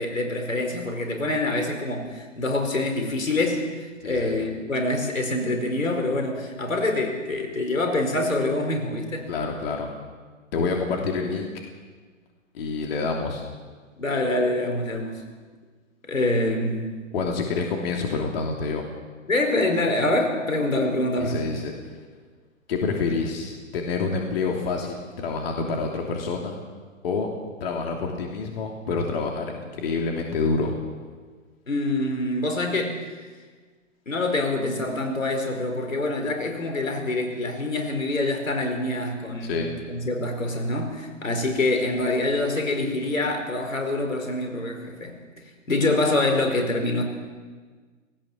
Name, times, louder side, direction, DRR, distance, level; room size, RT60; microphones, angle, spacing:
voice 1, 0.0-3.6 4.0-9.3 14.0-15.2 16.1-17.0 19.3-21.4 31.7-33.0 34.1-39.6 39.9-45.2 45.7-47.0, left 2 dB, 75° left, 4 dB, 4.7 m, -25 dB
voice 2, 4.0-4.3 9.3-9.9 10.5-11.5 12.5-13.4 17.1-19.0 21.2-21.7 22.7-26.6 27.0-27.3 27.6-30.8 39.4-39.7, left 4 dB, 45° left, 1 dB, 3.0 m, -27 dB
19.0 x 18.5 x 7.3 m, 1.5 s
figure-of-eight pair, 125°, 39 cm